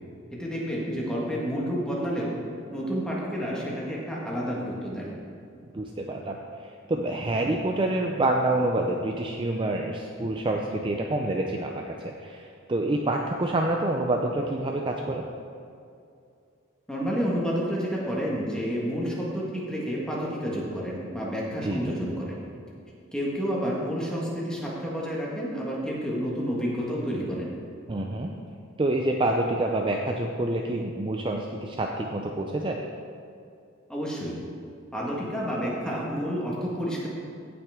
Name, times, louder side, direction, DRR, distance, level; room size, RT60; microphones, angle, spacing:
voice 1, 0.3-2.3 2.7-5.1 16.9-22.4 23.1-27.5 33.9-34.3 34.9-37.1, equal, 5° left, -5 dB, 1.7 m, -30 dB
voice 2, 5.7-6.4 6.9-15.3 21.6-21.9 27.9-28.3 28.8-32.8, right 2 dB, 25° right, 1 dB, 0.4 m, -27 dB
16.0 x 5.9 x 3.7 m, 2.5 s
head